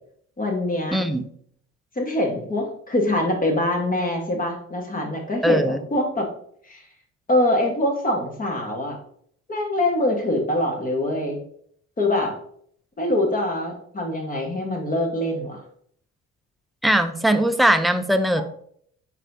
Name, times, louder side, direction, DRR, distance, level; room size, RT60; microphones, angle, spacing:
voice 1, 0.4-1.0 2.0-6.3 6.7-6.8 7.3-9.0 9.5-11.4 12.0-12.3 13.0-15.6, left 1 dB, 30° left, 2 dB, 1.2 m, -24 dB
voice 2, 0.9-1.3 5.4-5.8 16.8-18.4, right 1 dB, ahead, 7 dB, 0.3 m, -20 dB
4.2 x 4.2 x 2.6 m, 0.64 s
cardioid pair, 90°, 30 cm